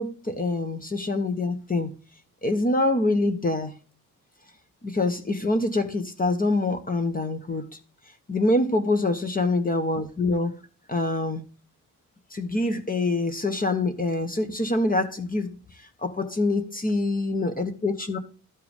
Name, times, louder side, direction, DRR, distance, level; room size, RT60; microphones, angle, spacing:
voice 1, 0.0-1.9 2.4-3.7 4.8-7.8 8.3-10.6 10.9-11.4 12.3-18.2, left 2 dB, 25° left, 1.1 m, -25 dB
12.5 x 4.6 x 3.5 m
cardioid pair, 85°, 36 cm